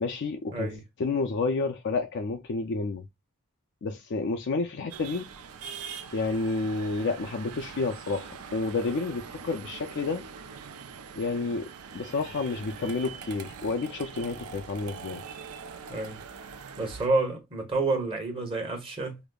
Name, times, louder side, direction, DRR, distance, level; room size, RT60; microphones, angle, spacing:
voice 1, 0.0-0.7 1.0-3.0 3.8-5.3 6.1-10.2 11.2-11.7 11.9-15.2, left 3 dB, 55° left, 0.4 m, -30 dB
sound 1, 4.9-17.1, right 6 dB, 75° right, 0.5 m, -43 dB
voice 2, 15.9-16.2 16.8-19.2, right 3 dB, 25° right, 1.0 m, -29 dB
4.9 x 2.0 x 2.3 m
head